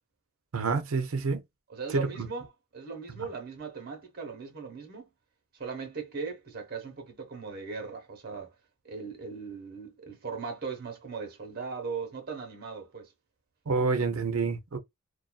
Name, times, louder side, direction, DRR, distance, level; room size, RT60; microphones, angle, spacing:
voice 1, 0.5-1.4 1.9-2.3 3.2-3.3 13.7-14.8, right 4 dB, 65° right, 0.5 m, -28 dB
voice 2, 1.7-2.5 2.7-5.1 5.5-8.5 8.8-13.1, right 5 dB, 45° right, 1.0 m, -38 dB
2.5 x 2.2 x 2.3 m
head